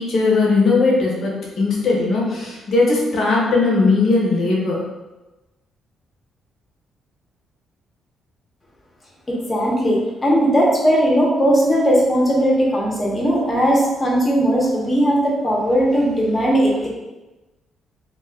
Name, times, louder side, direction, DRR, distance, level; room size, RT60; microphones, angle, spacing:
voice 1, 0.0-4.8, left 3 dB, 60° left, -4 dB, 0.8 m, -18 dB
voice 2, 9.3-16.9, equal, 25° left, -3 dB, 0.9 m, -18 dB
2.4 x 2.4 x 3.4 m, 1.1 s
cardioid pair, 90°, 0 cm